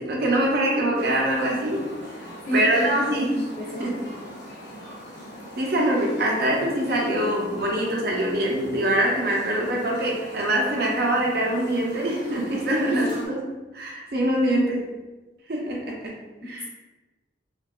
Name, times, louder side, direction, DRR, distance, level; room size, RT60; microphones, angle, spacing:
voice 1, 0.0-1.9 2.5-3.3 3.8-4.0 5.6-13.4 13.7-14.9 15.5-16.6, right 1 dB, 55° right, -1 dB, 0.5 m, -24 dB
sound 1, 0.9-13.3, equal, 70° left, 0.9 m, -41 dB
voice 2, 2.5-4.1 12.9-13.2 16.4-16.6, equal, 40° left, -5 dB, 0.5 m, -29 dB
2.7 x 2.2 x 2.3 m, 1.2 s
head